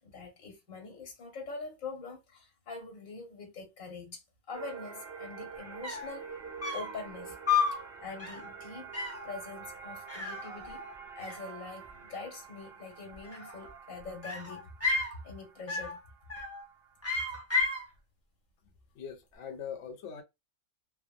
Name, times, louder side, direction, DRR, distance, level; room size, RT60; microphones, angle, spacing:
voice 1, 0.0-4.2 4.5-6.3 6.7-7.4 7.6-8.9 9.2-10.9 11.1-14.7 15.2-16.0, left 4 dB, 90° left, 1.5 m, -44 dB
sound 1, 4.5-17.2, right 6 dB, 30° right, 1.2 m, -47 dB
sound 2, 5.5-5.6 5.8-6.2 6.6-7.0 7.5-7.8 8.2-8.5 8.9-9.3 10.1-10.9 11.2-11.9 13.1-13.8 14.2-15.2 15.7-16.0 16.3-16.7 17.0-17.9, left 4 dB, 15° left, 0.6 m, -32 dB
voice 2, 19.0-20.2, left 7 dB, 65° left, 0.9 m, -41 dB
3.3 x 2.1 x 2.4 m
omnidirectional pair, 1.4 m